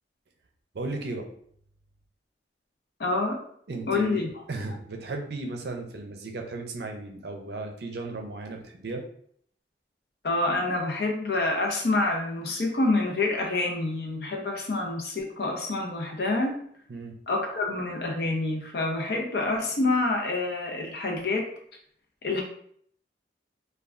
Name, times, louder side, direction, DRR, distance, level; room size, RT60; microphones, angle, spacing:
voice 1, 0.7-1.3 3.7-4.2 4.5-9.0 16.9-17.1, right 3 dB, 65° right, 3 dB, 0.5 m, -35 dB
voice 2, 3.0-3.4 3.9-4.3 10.2-16.6 17.3-21.5 22.2-22.4, left 2 dB, 60° left, 1 dB, 0.6 m, -27 dB
3.3 x 2.3 x 2.4 m, 0.64 s
head